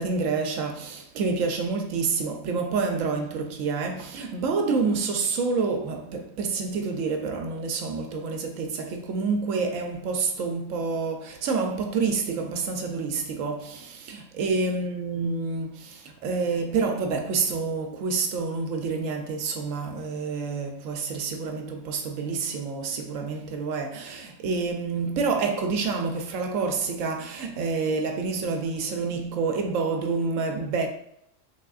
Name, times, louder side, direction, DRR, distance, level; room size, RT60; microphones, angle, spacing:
voice 1, 0.0-30.9, right 4 dB, 75° right, 0.9 m, -28 dB
3.5 x 3.5 x 2.3 m
omnidirectional pair, 1.4 m